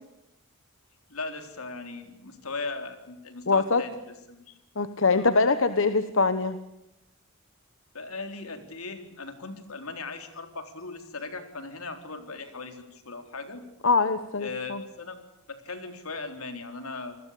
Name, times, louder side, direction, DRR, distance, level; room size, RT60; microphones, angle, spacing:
voice 1, 1.1-4.6 5.1-5.4 7.9-13.6 14.4-15.2 15.5-17.2, left 3 dB, 85° left, 7 dB, 3.9 m, -38 dB
voice 2, 3.5-3.8 4.8-6.6 13.8-14.8, left 4 dB, 60° left, 11 dB, 1.2 m, -23 dB
27.5 x 20.5 x 8.5 m, 0.89 s
head